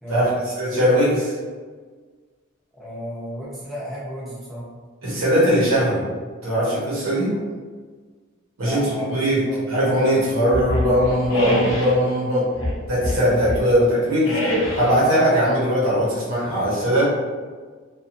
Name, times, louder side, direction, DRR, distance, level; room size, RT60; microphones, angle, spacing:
voice 1, 0.1-1.3 5.0-6.0 6.4-7.3 8.6-8.8 9.1-9.4 9.7-12.5 12.9-14.4 14.7-17.0, equal, 85° right, -8 dB, 1.1 m, -20 dB
voice 2, 2.8-4.7 7.1-7.2 8.6-9.2 9.4-9.6 13.7-13.8, equal, ahead, -9 dB, 0.6 m, -33 dB
sound 1, 10.5-12.0 12.5-13.7 14.2-15.0, left 1 dB, 65° left, 0.7 m, -25 dB
2.9 x 2.5 x 2.5 m, 1.5 s
head